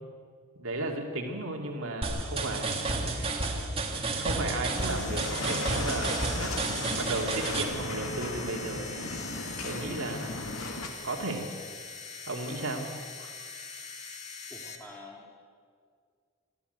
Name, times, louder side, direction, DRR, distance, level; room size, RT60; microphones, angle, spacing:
voice 1, 0.6-3.6 4.2-9.3 9.6-10.4 11.0-11.5 12.3-12.9 13.2-13.3, right 2 dB, 75° right, 1 dB, 2.4 m, -35 dB
sound 1, 2.0-7.6, right 3 dB, 25° right, 2.1 m, -31 dB
sound 2, 4.7-14.8, left 4 dB, 35° left, 2.1 m, -42 dB
sound 3, 4.9-10.9, left 2 dB, 80° left, 2.3 m, -37 dB
voice 2, 14.5-15.3, left 2 dB, 10° left, -1 dB, 2.4 m, -48 dB
28.0 x 13.0 x 8.0 m, 2.1 s
head